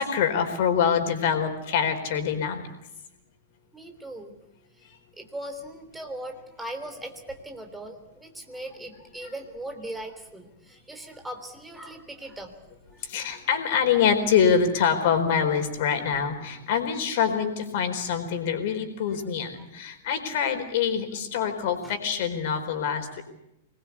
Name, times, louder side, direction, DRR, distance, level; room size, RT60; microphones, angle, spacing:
voice 1, 0.0-2.7 9.2-9.3 13.1-23.2, left 7 dB, 50° left, 7 dB, 4.3 m, -25 dB
voice 2, 3.7-4.3 5.2-12.5 13.3-13.4 19.1-19.3 21.8-21.9, right 1 dB, 5° right, 5 dB, 3.6 m, -39 dB
25.5 x 21.0 x 8.3 m, 0.86 s
figure-of-eight pair, 100°, 0 cm